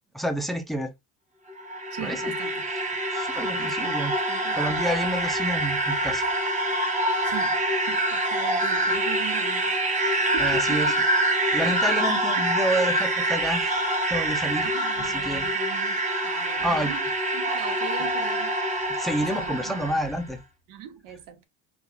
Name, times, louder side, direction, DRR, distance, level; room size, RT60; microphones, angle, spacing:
voice 1, 0.1-0.9 2.0-2.2 3.1-4.1 4.6-6.2 10.4-10.9 11.5-14.7 15.0-15.5 16.6-16.9 19.0-20.4, equal, ahead, 0.6 m, -28 dB
sound 1, 1.5-20.2, right 1 dB, 20° right, 1.0 m, -26 dB
voice 2, 1.9-2.6 3.5-5.0 7.2-7.6 7.9-9.7 10.3-11.0 11.7-11.8 12.4-12.5 14.6-17.1 17.3-18.5 19.3-20.1 20.7-21.4, right 9 dB, 75° right, 1.2 m, -40 dB
5.3 x 2.5 x 3.0 m
cardioid pair, 140°, 32 cm